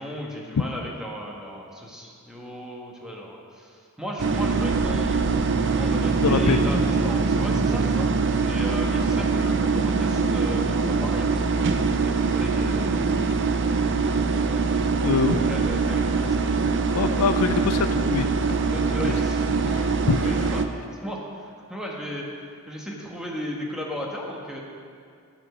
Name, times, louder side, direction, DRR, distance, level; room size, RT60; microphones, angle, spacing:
voice 1, 0.0-5.2 5.7-8.1 8.4-13.2 15.3-16.4 18.7-19.4 20.2-20.6 21.0-22.3 22.7-24.6, equal, 5° right, -2 dB, 1.3 m, -35 dB
sound 1, 4.2-20.6, right 4 dB, 55° right, 0.6 m, -23 dB
voice 2, 6.2-6.6 15.0-15.5 16.9-18.6 19.6-20.5, left 5 dB, 85° left, 9 dB, 0.4 m, -25 dB
10.0 x 7.0 x 6.1 m, 2.3 s
head